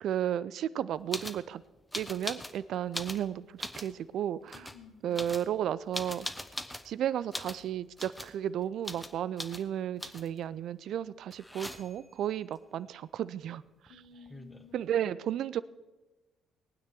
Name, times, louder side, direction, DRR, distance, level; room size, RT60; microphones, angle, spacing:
voice 1, 0.0-1.6 1.9-4.7 5.0-6.3 6.8-13.6 14.7-15.6, right 10 dB, 60° right, 18 dB, 0.4 m, -33 dB
sound 1, 1.1-1.4 1.9-2.6 2.9-3.9 4.5-4.8 5.1-6.9 7.3-7.6 8.0-8.4 8.8-9.1 9.4-9.6 10.0-10.4 11.3-12.1 13.9-14.0 14.1-14.7, left 1 dB, 10° left, 1.1 m, -40 dB
voice 2, 4.5-5.2 13.9-15.3, left 5 dB, 70° left, -3 dB, 2.5 m, -54 dB
20.0 x 9.4 x 4.6 m, 1.2 s
figure-of-eight pair, 45°, 0 cm